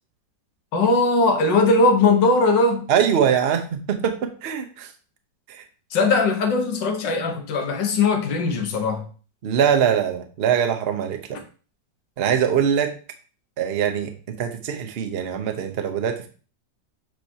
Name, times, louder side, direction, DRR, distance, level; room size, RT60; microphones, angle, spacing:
voice 1, 0.7-2.8 5.9-9.0, left 3 dB, 85° left, 1.7 m, -19 dB
voice 2, 2.9-4.9 5.5-5.6 9.4-11.4 12.2-12.9 13.6-16.3, right 8 dB, 50° right, 0.7 m, -22 dB
7.6 x 4.5 x 2.8 m
omnidirectional pair, 1.9 m